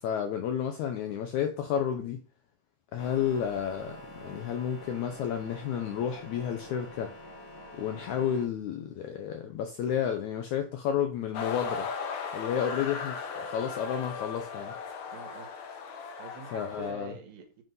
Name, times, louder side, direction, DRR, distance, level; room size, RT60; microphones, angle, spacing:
voice 1, 0.0-2.2 2.9-7.1 7.7-11.9 12.3-14.8 16.5-17.1, left 9 dB, 85° left, 1.7 m, -31 dB
sound 1, 3.0-8.5, equal, 45° left, 1.9 m, -47 dB
sound 2, 11.3-16.9, left 5 dB, 65° left, 1.6 m, -37 dB
voice 2, 12.5-12.9 15.1-15.5 16.2-17.6, right 4 dB, 75° right, 3.2 m, -45 dB
7.7 x 3.7 x 5.4 m
omnidirectional pair, 4.1 m